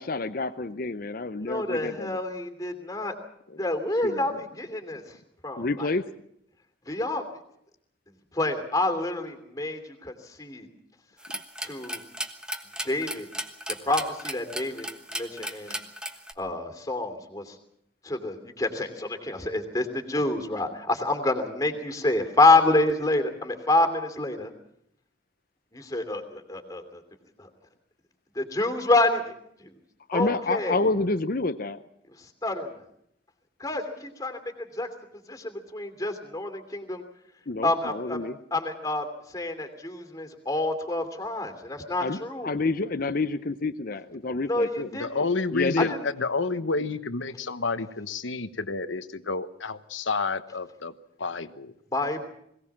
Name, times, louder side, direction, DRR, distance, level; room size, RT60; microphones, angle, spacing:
voice 1, 0.0-2.2 3.5-3.6 4.0-4.4 5.6-6.0 30.1-31.8 37.5-38.4 42.0-44.9 45.5-45.9, left 3 dB, 50° left, 10 dB, 0.7 m, -29 dB
voice 2, 1.4-3.1 3.6-5.0 5.4-5.9 6.9-7.2 8.3-10.7 11.6-12.0 12.8-13.3 13.8-14.9 15.1-15.8 16.4-17.5 18.0-24.5 25.7-27.0 27.4-27.5 28.3-29.3 29.6-29.7 30.1-30.8 32.4-32.8 33.6-34.9 35.3-37.0 37.6-38.2 38.5-39.1 39.3-42.5 44.4-45.2 45.9-46.1 51.9-52.3, left 2 dB, 20° left, 6 dB, 2.9 m, -27 dB
sound 1, 11.2-16.3, right 1 dB, 5° right, 1.3 m, -35 dB
voice 3, 45.0-50.9 51.2-51.7, left 4 dB, 85° left, 12 dB, 1.1 m, -29 dB
22.0 x 18.0 x 7.3 m, 0.74 s
head